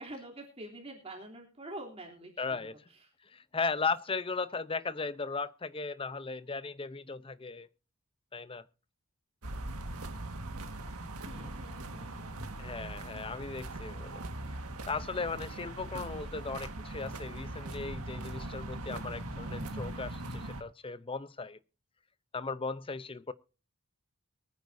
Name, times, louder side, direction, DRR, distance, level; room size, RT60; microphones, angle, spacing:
voice 1, 0.0-2.6 11.2-12.4, right 1 dB, 30° right, 3.1 m, -46 dB
voice 2, 2.4-2.8 3.3-7.7 8.3-8.7 12.6-14.2 14.9-21.6 22.3-23.3, left 4 dB, 25° left, 0.7 m, -37 dB
sound 1, 9.4-20.6, right 1 dB, 90° right, 1.6 m, -40 dB
23.5 x 9.6 x 2.7 m
head